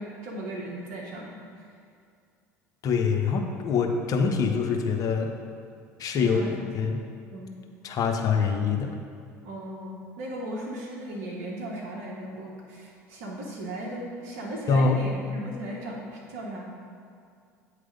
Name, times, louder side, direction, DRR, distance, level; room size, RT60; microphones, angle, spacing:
voice 1, 0.0-1.4 6.2-6.9 7.3-7.6 9.4-16.6, right 1 dB, 60° right, -2 dB, 1.1 m, -37 dB
voice 2, 2.8-5.3 6.0-6.4 6.7-7.0 7.8-9.0 14.7-15.0, left 5 dB, 45° left, 3 dB, 0.8 m, -24 dB
8.8 x 3.3 x 5.2 m, 2.3 s
hypercardioid pair, 70°, 8 cm